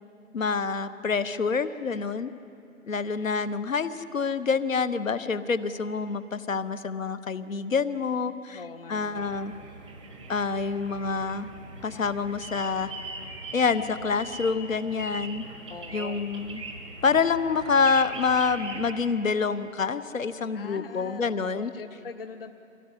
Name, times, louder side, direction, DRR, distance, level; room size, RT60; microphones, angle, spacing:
voice 1, 0.3-2.3 2.8-8.6 8.9-9.5 10.3-11.5 11.8-12.9 13.5-15.4 15.9-16.6 17.0-21.7, left 5 dB, 65° left, 14 dB, 1.2 m, -27 dB
voice 2, 8.5-9.5 15.7-16.2 20.5-22.5, left 4 dB, 40° left, 9 dB, 0.7 m, -42 dB
sound 1, 9.1-18.9, right 2 dB, 5° right, 0.7 m, -41 dB
24.0 x 16.5 x 9.9 m, 2.7 s
figure-of-eight pair, 160°, 42 cm